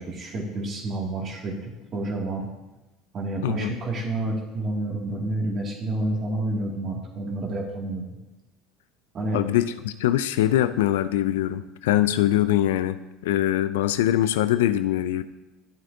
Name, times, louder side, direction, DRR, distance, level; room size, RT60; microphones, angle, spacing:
voice 1, 0.0-2.5 3.1-8.0 9.1-9.4, right 2 dB, 45° right, -1 dB, 2.3 m, -29 dB
voice 2, 3.4-3.7 9.3-13.0 13.2-15.2, left 12 dB, 80° left, 13 dB, 0.4 m, -23 dB
11.5 x 7.6 x 2.7 m, 1.0 s
hypercardioid pair, 80°, 0 cm